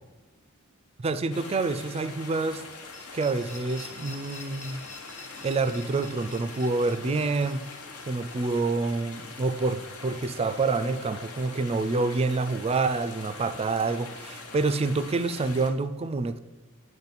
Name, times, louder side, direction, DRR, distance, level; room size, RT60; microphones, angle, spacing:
voice 1, 1.0-2.7 3.1-4.9 5.4-7.7 8.1-16.4, right 3 dB, 30° right, 0.3 m, -27 dB
sound 1, 1.3-15.7, left 4 dB, 75° left, 1.1 m, -43 dB
sound 2, 2.9-9.7, left 3 dB, 35° left, 0.7 m, -49 dB
8.9 x 3.1 x 5.8 m
head